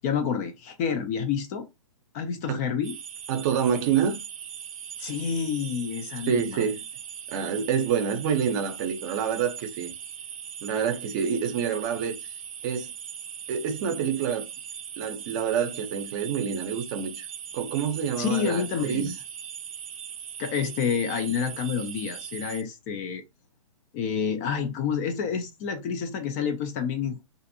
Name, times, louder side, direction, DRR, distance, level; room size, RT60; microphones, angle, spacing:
voice 1, 0.0-1.6 2.1-3.0 5.0-6.6 18.2-19.2 20.4-23.2 23.9-27.2, left 7 dB, 30° left, 0.3 m, -28 dB
sound 1, 2.8-22.6, right 8 dB, 80° right, 0.5 m, -40 dB
voice 2, 3.3-4.2 6.3-6.8 7.3-9.9 10.6-12.1 12.6-12.9 13.5-14.5 15.0-17.3 17.5-19.1, right 7 dB, 35° right, 0.6 m, -27 dB
2.5 x 2.5 x 2.6 m
hypercardioid pair, 140°, 17 cm